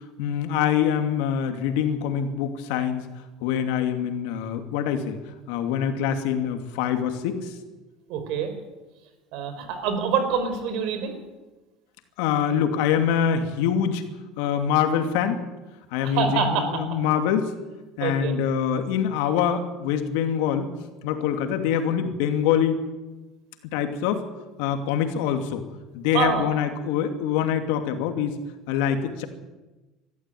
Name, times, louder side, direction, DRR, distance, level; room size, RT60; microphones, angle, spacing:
voice 1, 0.2-3.0 3.4-5.2 5.5-7.5 12.2-14.0 14.4-15.4 15.9-17.5 18.0-20.7 21.0-22.8 23.7-24.2 24.6-25.6 25.9-28.3 28.7-29.3, left 8 dB, 80° left, 6 dB, 2.7 m, -24 dB
voice 2, 8.1-8.5 9.3-11.2 16.0-16.8 18.0-18.3 26.1-26.5, right 6 dB, 70° right, 8 dB, 4.8 m, -26 dB
22.0 x 13.5 x 9.4 m, 1.1 s
cardioid pair, 140°, 0 cm